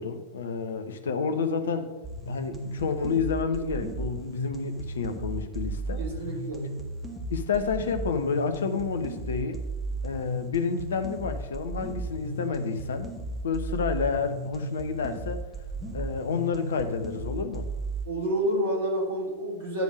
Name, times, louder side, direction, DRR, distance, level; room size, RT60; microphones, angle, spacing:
voice 1, 0.0-1.9 2.3-6.0 7.3-9.6 10.0-13.1 13.4-15.5 15.9-17.7, left 5 dB, 65° left, 9 dB, 0.7 m, -29 dB
sound 1, 2.0-18.0, right 2 dB, 10° right, 1.6 m, -35 dB
voice 2, 6.0-6.6 18.0-19.8, right 1 dB, 60° right, -4 dB, 3.2 m, -29 dB
10.5 x 3.5 x 6.2 m, 1.1 s
figure-of-eight pair, 90°, 0 cm